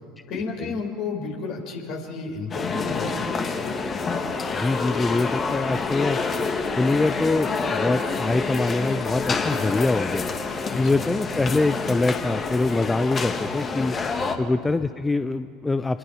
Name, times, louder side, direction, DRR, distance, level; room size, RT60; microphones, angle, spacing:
voice 1, 0.3-3.7 10.7-11.1 14.1-14.4, left 4 dB, 55° left, 2 dB, 4.7 m, -32 dB
sound 1, 2.5-14.4, left 4 dB, 30° left, 1.9 m, -27 dB
voice 2, 4.5-6.2 6.8-10.3 10.7-14.0 14.4-16.0, left 3 dB, 15° left, 12 dB, 0.6 m, -24 dB
27.0 x 21.0 x 5.0 m, 2.3 s
figure-of-eight pair, 75°, 0 cm